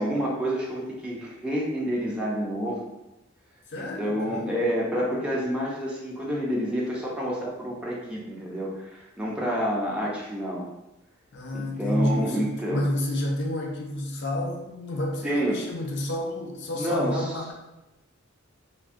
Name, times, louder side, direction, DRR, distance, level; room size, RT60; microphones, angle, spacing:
voice 1, 0.0-2.9 3.8-10.6 11.5-12.8 15.2-15.6 16.8-17.3, equal, 5° right, -5 dB, 0.4 m, -28 dB
voice 2, 3.7-4.4 11.3-17.5, left 1 dB, 60° left, 1 dB, 0.5 m, -30 dB
3.3 x 2.1 x 2.4 m, 0.98 s
head